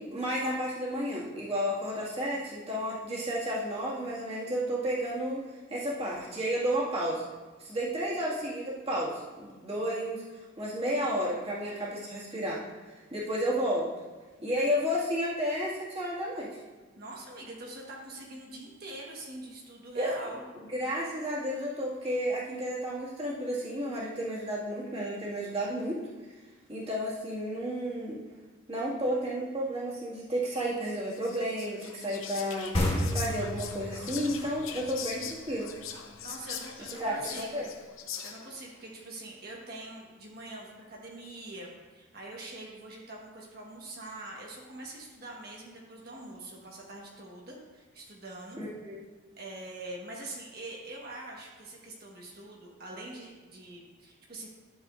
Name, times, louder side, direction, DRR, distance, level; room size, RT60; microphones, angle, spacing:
voice 1, 0.0-5.4 5.7-7.2 7.6-10.2 10.6-12.6 12.9-13.9 14.4-16.5 19.9-20.1 20.7-26.0 26.7-28.2 28.7-32.7 33.1-35.7 37.0-37.7 48.6-49.0, equal, 30° right, -7 dB, 2.0 m, -32 dB
voice 2, 17.0-20.4 36.2-37.6 38.2-48.6 49.4-54.5, right 2 dB, 50° right, -2 dB, 1.4 m, -44 dB
Whispering, 31.1-38.6, left 7 dB, 85° left, 0.8 m, -42 dB
sound 1, 32.7-36.1, left 1 dB, 30° left, 1.2 m, -32 dB
11.5 x 7.4 x 2.5 m, 1.3 s
head